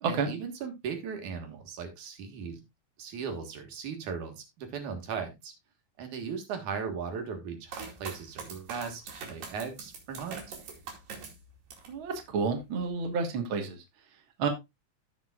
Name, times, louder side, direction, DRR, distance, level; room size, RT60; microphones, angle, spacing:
voice 1, 0.1-2.6 3.0-5.5 6.0-10.4, right 6 dB, 65° right, 5 dB, 3.1 m, -37 dB
sound 1, 7.7-12.0 12.4-13.1, right 5 dB, 85° right, 4.3 m, -43 dB
voice 2, 11.9-13.8 14.4-14.5, right 5 dB, 50° right, 4 dB, 1.7 m, -30 dB
16.0 x 6.0 x 2.3 m, 0.21 s
omnidirectional pair, 3.8 m